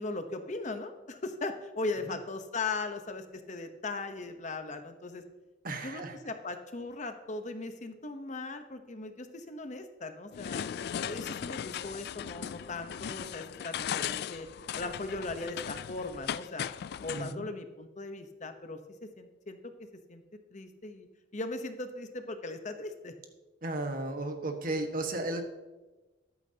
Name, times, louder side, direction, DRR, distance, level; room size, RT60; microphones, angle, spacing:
voice 1, 0.0-5.2 5.8-10.6 11.0-14.5 14.7-16.7 17.0-18.8 19.2-19.6 20.1-20.2 20.5-21.1 21.3-23.1, left 3 dB, 40° left, 7 dB, 0.9 m, -38 dB
voice 2, 5.6-6.2 17.1-17.5 23.6-25.4, right 2 dB, 50° right, 5 dB, 1.5 m, -34 dB
sound 1, 10.3-17.3, left 9 dB, 55° left, 0.3 m, -37 dB
14.0 x 12.0 x 2.9 m, 1.1 s
head